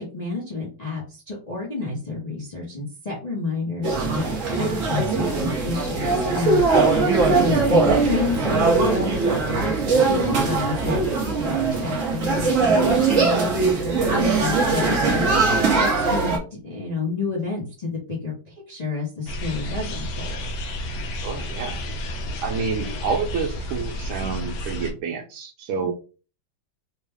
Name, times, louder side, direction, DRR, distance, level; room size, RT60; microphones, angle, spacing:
voice 1, 0.0-4.2 4.6-16.4 16.6-20.4 25.7-25.9, left 3 dB, 35° left, -5 dB, 0.6 m, -30 dB
sound 1, 3.8-16.4, right 4 dB, 50° right, 1.1 m, -21 dB
sound 2, 19.3-24.9, equal, 70° left, 0.9 m, -31 dB
voice 2, 21.1-21.8 22.4-25.9, right 5 dB, 90° right, 2 dB, 1.4 m, -28 dB
3.6 x 2.2 x 3.4 m, 0.35 s
omnidirectional pair, 2.2 m